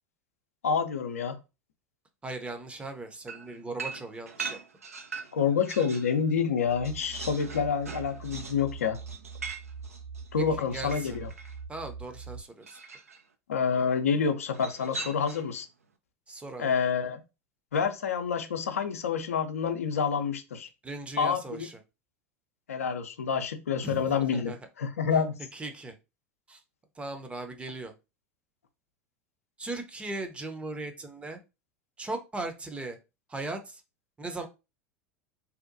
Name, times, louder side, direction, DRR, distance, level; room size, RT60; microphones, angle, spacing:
voice 1, 0.6-1.4 5.3-9.0 10.3-11.3 13.5-15.7 16.6-17.2 17.7-20.7 21.2-21.7 22.7-25.3, left 6 dB, 80° left, 7 dB, 0.5 m, -28 dB
voice 2, 2.2-4.6 10.7-11.2 11.7-12.8 16.3-16.7 20.8-21.8 23.8-24.1 24.3-24.6 25.5-26.0 26.5-26.6 27.0-27.9 29.6-31.4 32.0-33.0 33.3-33.8 34.2-34.5, right 2 dB, 15° right, 6 dB, 0.6 m, -38 dB
sound 1, 3.3-6.2 6.5-11.6 12.6-13.2 14.5-15.6, right 4 dB, 85° right, 0.4 m, -41 dB
sound 2, 6.6-12.4, right 5 dB, 65° right, 1.4 m, -43 dB
2.7 x 2.2 x 2.5 m, 0.27 s
figure-of-eight pair, 80°, 8 cm